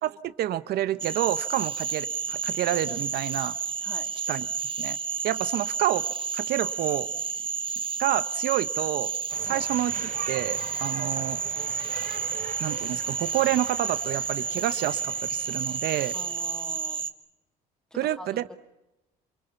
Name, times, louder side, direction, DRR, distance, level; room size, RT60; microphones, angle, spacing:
voice 1, 0.0-3.5 4.3-4.5 4.8-5.0 5.2-6.1 6.3-7.1 8.0-9.1 9.4-11.4 12.6-16.1 18.0-18.4, right 13 dB, 70° right, 14 dB, 1.1 m, -28 dB
Cricket / Frog, 1.0-17.1, right 6 dB, 30° right, 1.5 m, -31 dB
sound 1, 9.3-16.9, right 10 dB, 50° right, 0.9 m, -43 dB
voice 2, 16.1-17.1 17.9-18.4, equal, 5° left, 8 dB, 2.9 m, -44 dB
28.0 x 22.5 x 7.1 m, 0.95 s
cardioid pair, 110°, 17 cm